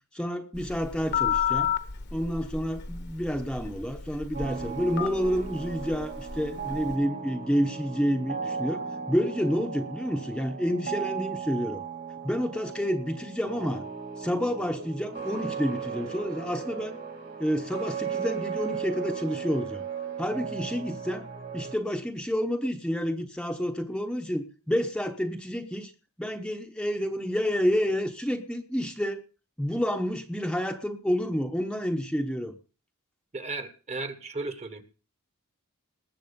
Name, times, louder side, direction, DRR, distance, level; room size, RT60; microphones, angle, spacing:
voice 1, 0.1-1.7 2.1-11.8 12.2-13.8 14.2-17.0 17.4-19.8 20.2-21.3 21.5-25.9 26.2-29.2 29.6-32.5, equal, 5° left, 3 dB, 0.9 m, -29 dB
Telephone, 0.5-6.9, left 8 dB, 50° left, 1.2 m, -32 dB
sound 1, 4.3-21.8, right 6 dB, 50° right, 2.3 m, -36 dB
voice 2, 33.3-34.8, right 3 dB, 30° right, 11 dB, 1.4 m, -35 dB
19.5 x 7.5 x 5.2 m, 0.36 s
head